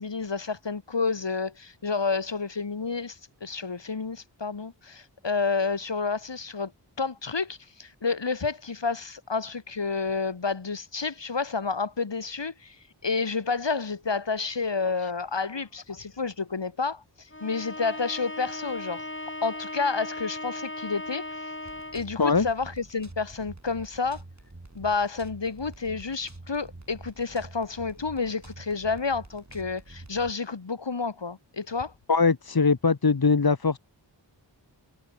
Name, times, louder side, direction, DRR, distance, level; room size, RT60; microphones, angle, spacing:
voice 1, 0.0-6.7 7.0-12.8 13.0-19.0 19.4-21.2 21.9-24.2 24.7-31.9, left 4 dB, 75° left, 2.6 m, -30 dB
Bowed string instrument, 17.3-22.1, left 1 dB, 25° left, 6.0 m, -37 dB
sound 1, 21.7-30.3, right 2 dB, 40° right, 6.9 m, -47 dB
voice 2, 32.1-33.8, left 4 dB, 55° left, 1.6 m, -21 dB
wide cardioid pair, 50°, 44 cm